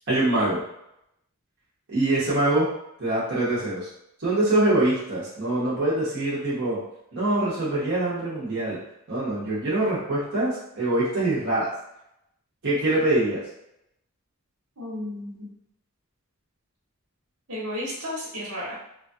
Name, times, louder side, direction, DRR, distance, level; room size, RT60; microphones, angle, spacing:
voice 1, 0.1-0.6 1.9-2.7 3.0-3.9 4.2-6.8 7.1-8.8 9.1-11.7 12.6-13.4, right 2 dB, 55° right, -9 dB, 0.8 m, -24 dB
voice 2, 14.8-15.5 17.5-18.8, left 1 dB, 80° right, -6 dB, 1.2 m, -33 dB
3.1 x 2.3 x 2.6 m, 0.81 s
head